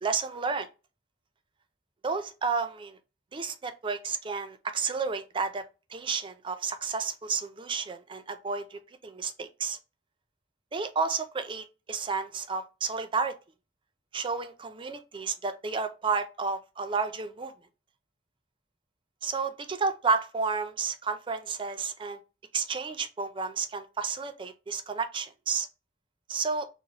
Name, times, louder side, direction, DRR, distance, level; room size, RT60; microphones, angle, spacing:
voice 1, 0.0-0.7 2.0-3.0 3.3-5.6 5.9-9.8 10.7-13.4 14.1-17.5 19.2-22.2 22.5-25.7 26.3-26.6, right 5 dB, 30° right, 0.4 m, -31 dB
3.9 x 2.0 x 2.8 m
head